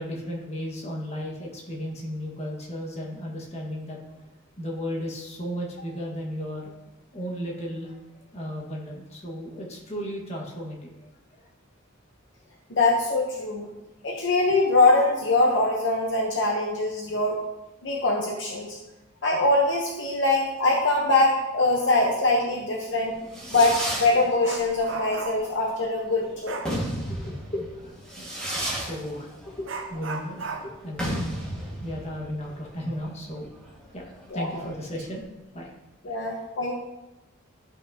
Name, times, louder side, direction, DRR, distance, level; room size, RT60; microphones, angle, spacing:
voice 1, 0.0-4.2 4.6-6.7 7.1-7.9 8.3-10.9 11.3-11.4 21.8-21.9 23.0-23.2 27.1-28.3 28.7-31.2 31.8-34.0 34.3-35.2 35.5-35.7 36.0-36.2, equal, 30° left, -2 dB, 1.5 m, -35 dB
voice 2, 12.7-13.7 14.0-17.4 17.8-18.8 19.2-23.2 23.5-26.6 34.3-34.5 36.0-36.8, left 2 dB, 60° left, 0 dB, 0.9 m, -23 dB
Fireworks, 23.0-35.2, equal, 5° left, 1.7 m, -34 dB
Dog, 23.2-23.3 23.7-25.6 26.4-26.8 28.8-28.9 29.6-32.9 33.2-33.3 33.9-34.0 34.6-35.0 35.4-35.7, right 4 dB, 60° right, 0.7 m, -38 dB
12.0 x 5.6 x 2.8 m, 1.0 s
head